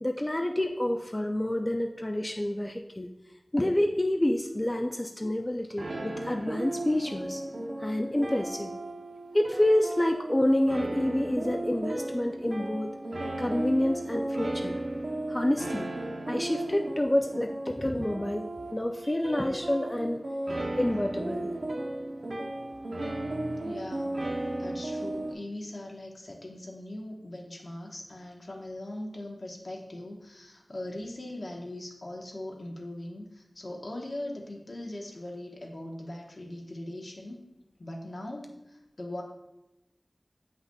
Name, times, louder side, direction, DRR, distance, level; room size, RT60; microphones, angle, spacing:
voice 1, 0.0-3.1 3.5-7.4 7.8-8.7 9.3-12.9 13.4-14.8 15.3-15.9 16.3-20.3 20.8-21.5 23.3-23.6, left 1 dB, 25° left, 4 dB, 0.4 m, -28 dB
sound 1, 5.8-25.3, right 1 dB, 90° right, 0.7 m, -35 dB
voice 2, 23.6-24.2 24.6-37.4 37.8-39.2, left 1 dB, 70° left, 0 dB, 1.0 m, -40 dB
7.8 x 5.6 x 2.3 m, 0.92 s
wide cardioid pair, 50°, 0 cm